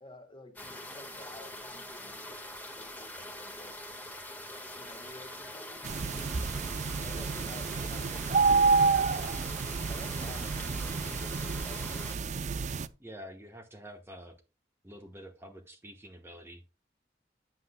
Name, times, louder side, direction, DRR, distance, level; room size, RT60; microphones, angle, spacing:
voice 1, 0.0-3.8 4.6-9.4 9.9-11.9, left 1 dB, 30° left, 1.8 m, -52 dB
sound 1, 0.6-12.2, left 1 dB, 10° left, 1.6 m, -44 dB
sound 2, 5.8-12.9, right 4 dB, 40° right, 0.5 m, -29 dB
voice 2, 13.0-14.4 14.8-16.7, equal, 15° right, 1.1 m, -47 dB
9.7 x 8.0 x 2.2 m
head